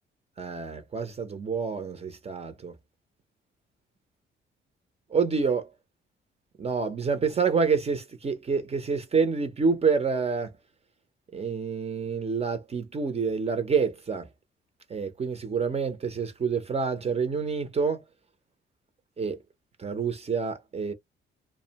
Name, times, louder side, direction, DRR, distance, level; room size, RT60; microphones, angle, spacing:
voice 1, 0.4-2.7 5.1-5.7 6.6-10.5 11.3-14.3 14.9-18.0 19.2-19.4 19.8-20.9, right 5 dB, 30° right, 0.6 m, -27 dB
2.4 x 2.1 x 2.8 m
cardioid pair, 90°, 20 cm